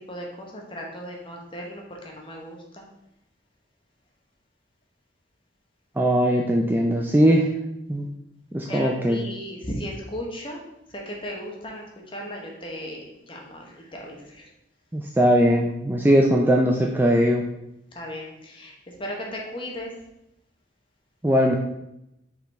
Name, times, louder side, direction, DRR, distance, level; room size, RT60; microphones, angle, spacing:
voice 1, 0.0-2.8 8.7-10.6 10.9-11.8 12.1-13.0 13.3-14.5 17.9-19.9, equal, 25° left, 0 dB, 1.1 m, -36 dB
voice 2, 6.0-7.4 7.9-8.1 8.5-9.2 14.9-17.4 21.2-21.6, equal, 10° right, 0 dB, 0.4 m, -20 dB
5.7 x 4.1 x 4.2 m, 0.85 s
head